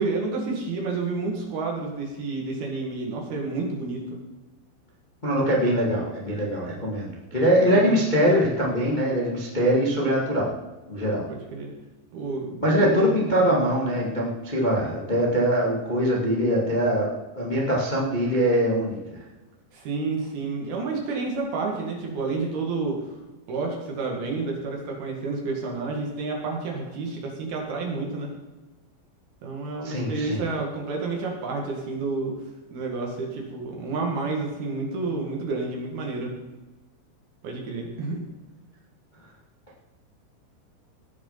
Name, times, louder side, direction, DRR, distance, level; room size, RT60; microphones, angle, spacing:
voice 1, 0.0-4.0 7.3-8.0 11.3-11.7 12.1-13.1 13.5-13.6 19.7-23.1 23.5-28.3 29.4-32.3 32.7-36.3 37.4-38.2, right 3 dB, 60° right, 0 dB, 3.6 m, -30 dB
voice 2, 5.2-10.5 10.9-11.3 12.6-17.1 17.3-19.0 29.8-30.5, equal, 45° left, -4 dB, 0.5 m, -23 dB
17.5 x 6.6 x 5.8 m, 1.1 s
omnidirectional pair, 5.4 m